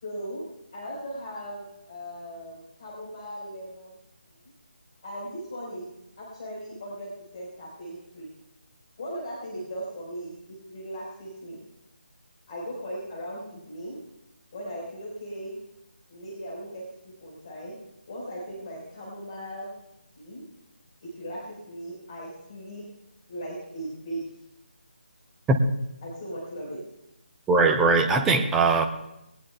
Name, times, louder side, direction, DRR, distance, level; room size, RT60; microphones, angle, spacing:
voice 1, 0.0-4.0 5.0-5.9 6.2-8.3 9.0-11.6 12.5-14.0 14.5-15.6 16.1-16.8 17.2-17.8 18.1-19.7 20.2-20.4 21.0-22.8 23.3-24.3 26.0-26.8, equal, 30° left, -4 dB, 4.4 m, -38 dB
voice 2, 27.5-28.9, right 3 dB, 5° right, 5 dB, 0.6 m, -20 dB
20.5 x 19.0 x 2.3 m, 0.86 s
figure-of-eight pair, 155°, 6 cm